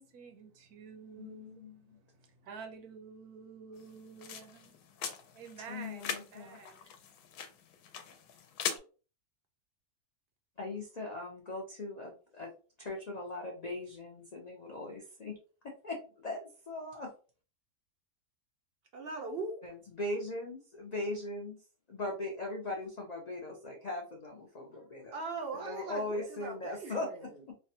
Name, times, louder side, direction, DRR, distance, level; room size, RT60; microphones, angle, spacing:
voice 1, 0.0-4.7 5.3-6.9, right 5 dB, 85° right, 1.2 m, -50 dB
voice 2, 1.2-2.0 5.7-6.6 10.6-12.5 12.8-15.4 15.6-17.1 19.6-21.6 21.9-25.2 25.5-27.5, left 2 dB, 70° left, 0.4 m, -40 dB
sound 1, 3.8-8.8, left 7 dB, 90° left, 1.1 m, -41 dB
voice 3, 18.9-19.6 25.1-27.2, right 3 dB, 65° right, 0.5 m, -40 dB
3.3 x 2.2 x 2.7 m
omnidirectional pair, 1.6 m